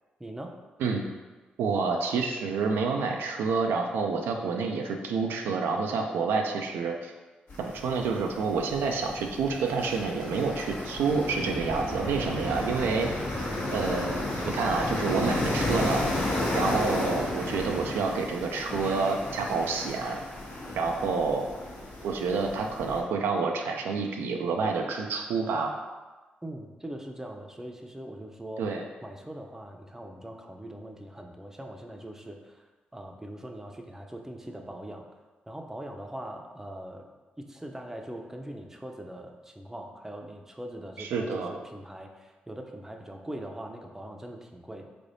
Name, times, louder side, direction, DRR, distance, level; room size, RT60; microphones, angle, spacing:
voice 1, 0.2-0.6 26.4-28.6 29.0-32.7 32.9-35.0 35.5-37.1 37.4-44.9, right 1 dB, 10° right, 2 dB, 0.5 m, -41 dB
voice 2, 1.6-7.1 7.6-13.1 13.7-14.2 14.5-16.0 16.5-20.2 20.8-21.5 22.0-25.7 28.6-28.8 41.0-41.6, right 4 dB, 85° right, 2 dB, 0.3 m, -28 dB
sound 1, 7.5-23.0, left 2 dB, 70° left, 1.0 m, -33 dB
sound 2, 11.4-18.1, right 1 dB, 55° right, 0.8 m, -39 dB
3.7 x 3.4 x 2.6 m, 1.2 s
supercardioid pair, 45°, 4 cm